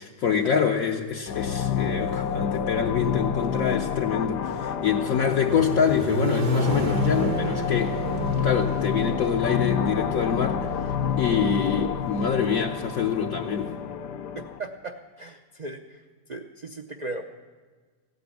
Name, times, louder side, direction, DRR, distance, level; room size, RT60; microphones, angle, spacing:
voice 1, 0.0-8.0 8.4-10.7 11.2-13.7, left 7 dB, 65° left, 1 dB, 1.1 m, -25 dB
sound 1, 1.3-14.6, left 7 dB, 80° left, 1.3 m, -29 dB
Accelerating revving vroom, 4.8-10.8, right 2 dB, 75° right, 1.8 m, -31 dB
voice 2, 14.6-16.0 16.3-17.2, right 2 dB, 50° right, 3 dB, 0.5 m, -37 dB
15.5 x 9.5 x 8.3 m, 1.4 s
omnidirectional pair, 1.7 m